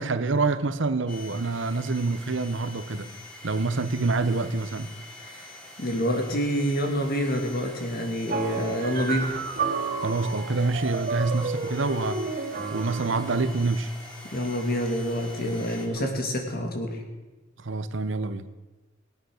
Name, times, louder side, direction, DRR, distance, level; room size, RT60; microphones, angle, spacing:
voice 1, 0.0-3.1 3.4-4.9 10.0-12.2 12.7-13.9 15.5-16.1 17.6-18.5, right 3 dB, 70° right, 11 dB, 0.9 m, -27 dB
sound 1, 1.1-15.9, left 1 dB, 5° left, 2.9 m, -45 dB
voice 2, 5.8-9.4 14.3-17.0, equal, 50° left, 3 dB, 2.6 m, -27 dB
sound 2, 8.3-13.5, right 4 dB, 50° right, 2.4 m, -31 dB
18.0 x 9.2 x 6.5 m, 1.2 s
head